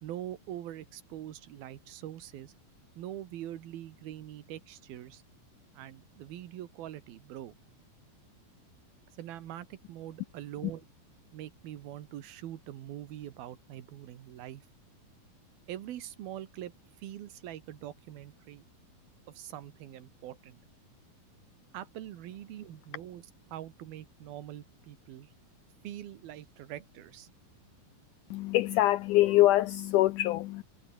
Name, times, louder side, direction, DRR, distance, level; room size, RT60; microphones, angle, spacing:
voice 1, 0.0-2.5 3.0-5.2 5.7-7.5 9.2-10.9 11.3-14.6 15.7-16.7 17.0-18.6 19.3-20.6 21.7-23.2 23.5-25.3 25.8-27.3, right 12 dB, 90° right, 3.4 m, -43 dB
voice 2, 28.3-30.6, left 16 dB, 80° left, 1.8 m, -24 dB
omnidirectional pair, 4.2 m